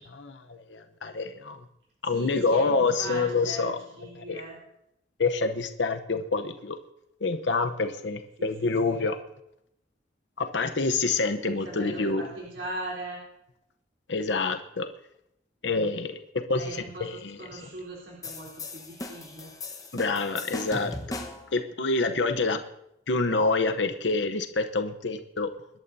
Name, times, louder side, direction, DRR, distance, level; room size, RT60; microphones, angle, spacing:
voice 1, 0.1-1.6 2.0-3.8 4.1-4.4 5.2-6.8 7.2-9.2 10.4-12.3 14.1-14.9 15.6-16.2 16.5-17.6 19.9-21.2 21.5-22.6 23.1-25.5, left 3 dB, 80° left, 7 dB, 0.9 m, -27 dB
voice 2, 2.0-4.6 8.4-9.1 11.4-13.2 16.5-19.5, right 1 dB, 85° right, -5 dB, 3.8 m, -40 dB
sound 1, 18.2-21.5, left 2 dB, 20° left, 1.2 m, -38 dB
24.5 x 12.0 x 2.7 m, 0.81 s
head